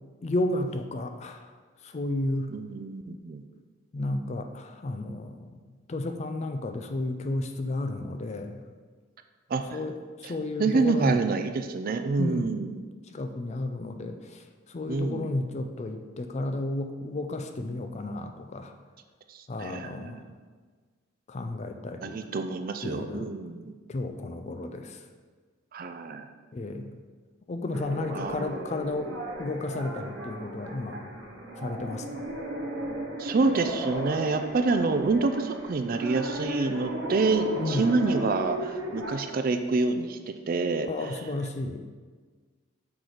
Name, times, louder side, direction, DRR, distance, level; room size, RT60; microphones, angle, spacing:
voice 1, 0.2-1.5 1.8-2.5 3.9-5.6 5.9-8.6 9.7-11.2 12.2-12.4 13.1-14.4 14.7-18.7 19.5-20.2 21.3-22.2 22.8-23.3 23.9-25.0 26.5-26.9 27.5-31.0 31.6-32.2 37.6-37.9 40.9-41.9, left 2 dB, 35° left, 7 dB, 0.4 m, -32 dB
voice 2, 2.5-3.4 9.5-9.8 10.2-10.3 10.6-12.8 14.9-15.4 19.3-20.3 22.0-23.7 25.7-26.3 28.1-28.6 33.2-41.1, right 3 dB, 45° right, 8 dB, 0.4 m, -27 dB
sound 1, 27.7-39.1, right 1 dB, 70° right, 1.3 m, -36 dB
5.9 x 4.0 x 4.8 m, 1.5 s
head